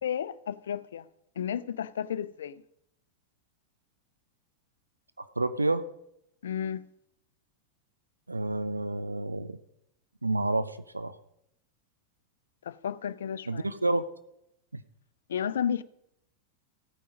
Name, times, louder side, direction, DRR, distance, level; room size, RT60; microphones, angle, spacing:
voice 1, 0.0-1.1 1.4-2.6 6.4-6.9 12.6-13.7 15.3-15.8, left 8 dB, 65° left, 0.6 m, -32 dB
voice 2, 5.2-5.9 8.3-9.6 10.2-11.1 13.5-14.0 14.7-14.8, right 2 dB, 80° right, 0.6 m, -29 dB
15.5 x 9.3 x 5.1 m
figure-of-eight pair, 90°, 0 cm